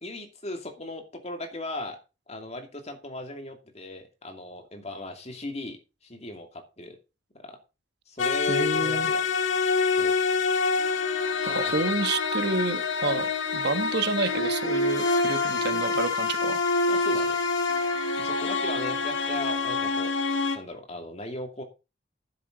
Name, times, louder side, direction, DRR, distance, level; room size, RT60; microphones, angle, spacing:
voice 1, 0.0-2.0 2.3-7.0 7.4-7.6 8.1-9.2 9.9-10.1 11.5-11.8 13.1-13.2 16.9-17.4 18.2-20.1 20.5-21.6, left 1 dB, 35° left, 4 dB, 2.6 m, -38 dB
sound 1, 8.2-20.6, left 4 dB, 75° left, 2.0 m, -26 dB
voice 2, 8.5-9.1 11.5-13.3 13.5-16.6, right 3 dB, 55° right, 10 dB, 1.2 m, -29 dB
12.0 x 10.0 x 4.0 m, 0.30 s
head